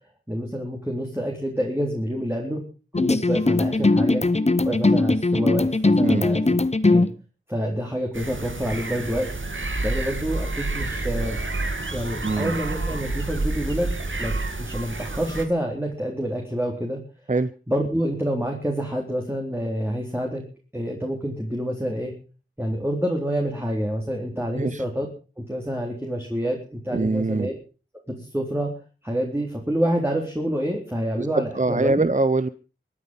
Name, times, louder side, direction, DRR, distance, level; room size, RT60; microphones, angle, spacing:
voice 1, 0.3-2.6 3.0-4.2 4.7-6.4 6.9-7.1 7.5-9.3 9.8-11.4 11.9-13.9 14.2-14.3 14.6-17.0 17.7-20.4 20.7-22.1 22.6-25.1 25.4-27.5 28.1-28.7 29.0-32.1, equal, 10° right, 0 dB, 3.8 m, -27 dB
sound 1, 2.9-7.1, left 2 dB, 30° left, 0.9 m, -20 dB
sound 2, 8.1-15.4, right 2 dB, 65° right, 2.2 m, -29 dB
voice 2, 12.2-12.5 17.3-17.5 24.6-24.8 26.9-27.5 31.2-32.5, right 3 dB, 35° right, 15 dB, 0.7 m, -23 dB
23.5 x 9.8 x 5.4 m, 0.36 s
wide cardioid pair, 45°, 21 cm